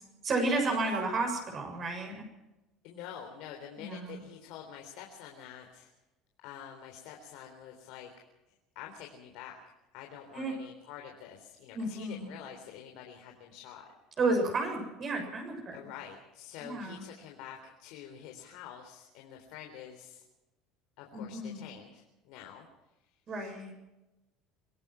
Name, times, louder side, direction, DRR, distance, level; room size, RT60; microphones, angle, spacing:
voice 1, 0.2-2.2 3.8-4.2 10.3-10.6 11.7-12.3 14.2-15.8 16.6-17.0 21.1-21.6 23.3-23.7, right 2 dB, 35° right, 3 dB, 7.0 m, -32 dB
voice 2, 2.8-5.9 6.4-8.1 8.5-9.6 9.9-13.9 15.7-20.2 21.0-22.7 23.0-23.7, left 9 dB, 70° left, 2 dB, 3.8 m, -47 dB
25.5 x 17.5 x 6.0 m, 0.99 s
cardioid pair, 135°, 0 cm